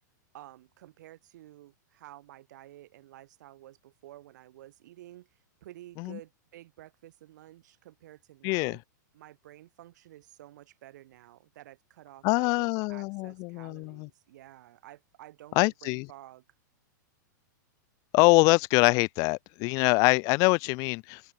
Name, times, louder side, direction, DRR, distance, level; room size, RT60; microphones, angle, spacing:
voice 1, 0.3-8.8 9.1-16.4, right 14 dB, 65° right, 4.4 m, -51 dB
voice 2, 8.4-8.8 12.2-14.1 15.6-16.1 18.1-21.2, left 28 dB, 35° left, 0.4 m, -24 dB
supercardioid pair, 145°, 10 cm